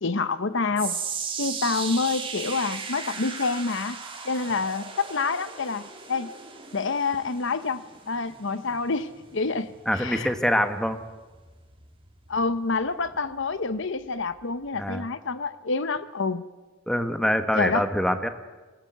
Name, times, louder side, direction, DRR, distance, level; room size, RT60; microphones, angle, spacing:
voice 1, 0.0-1.0 1.4-4.0 4.2-6.3 6.7-10.3 12.3-16.5 17.5-17.8, left 4 dB, 60° left, 14 dB, 0.9 m, -27 dB
sound 1, 0.8-13.1 13.4-13.8 14.4-14.5, right 6 dB, 25° right, 3.0 m, -37 dB
voice 2, 9.9-11.0 14.7-15.1 16.9-18.3, equal, 5° left, 8 dB, 1.4 m, -24 dB
24.5 x 19.5 x 8.1 m, 1.2 s
head